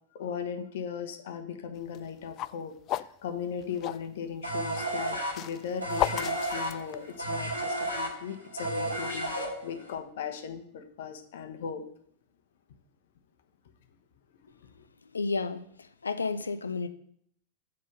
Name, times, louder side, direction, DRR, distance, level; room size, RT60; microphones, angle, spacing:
voice 1, 0.1-11.8 14.6-14.9, left 7 dB, 60° left, 1.1 m, -38 dB
sound 1, 1.8-4.1 5.0-7.3, left 14 dB, 40° left, 0.3 m, -34 dB
sound 2, 4.4-9.9, right 1 dB, 85° right, 2.5 m, -32 dB
voice 2, 15.0-16.9, left 4 dB, 75° left, 0.7 m, -32 dB
7.7 x 5.3 x 6.6 m
figure-of-eight pair, 90°, 0 cm